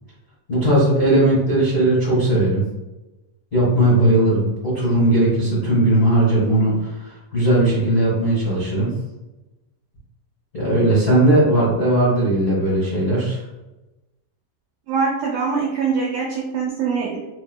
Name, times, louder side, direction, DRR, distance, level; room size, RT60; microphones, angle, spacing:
voice 1, 0.5-2.6 3.5-8.9 10.5-13.4, right 1 dB, 80° left, -9 dB, 0.7 m, -18 dB
voice 2, 14.9-17.2, right 5 dB, 85° right, -2 dB, 1.7 m, -23 dB
5.5 x 2.8 x 2.2 m, 1.0 s
omnidirectional pair, 4.3 m